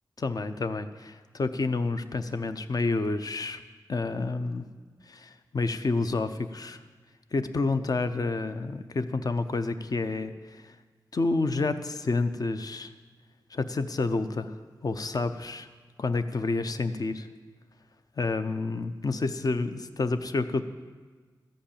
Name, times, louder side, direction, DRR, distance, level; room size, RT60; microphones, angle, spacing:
voice 1, 0.2-3.6 3.9-4.7 5.1-6.8 7.3-10.7 11.1-12.9 13.5-14.6 14.8-15.7 16.0-17.3 18.2-20.6, left 3 dB, 50° left, 10 dB, 0.6 m, -29 dB
14.0 x 5.3 x 8.6 m, 1.4 s
wide cardioid pair, 65°, 8 cm